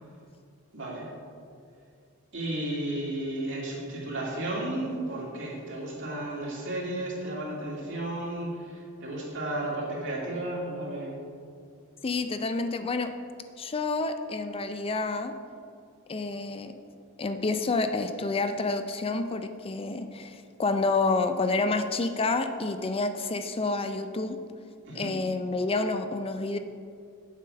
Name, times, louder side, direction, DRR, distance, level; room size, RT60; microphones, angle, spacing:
voice 1, 0.7-1.1 2.3-11.1 24.9-25.1, right 1 dB, 60° right, -4 dB, 2.4 m, -33 dB
voice 2, 12.0-13.1 13.6-15.3 16.1-16.7 17.2-24.4 24.9-26.6, left 3 dB, 25° left, 8 dB, 0.4 m, -29 dB
7.6 x 7.3 x 5.3 m, 2.4 s
head